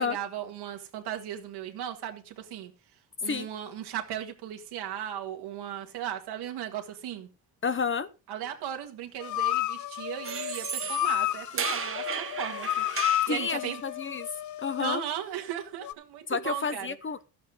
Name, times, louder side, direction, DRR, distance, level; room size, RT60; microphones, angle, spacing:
voice 1, 0.0-2.7 3.2-7.3 8.3-12.8 13.3-13.8 14.8-16.9, right 10 dB, 85° right, 2.0 m, -36 dB
voice 2, 7.6-8.1 13.2-14.3 14.6-15.0 16.3-17.2, left 5 dB, 30° left, 0.8 m, -30 dB
sound 1, 9.2-15.1 15.8-15.9, left 14 dB, 50° left, 0.5 m, -31 dB
sound 2, 10.2-13.3, right 6 dB, 35° right, 1.3 m, -34 dB
13.0 x 8.7 x 3.9 m
cardioid pair, 100°, 39 cm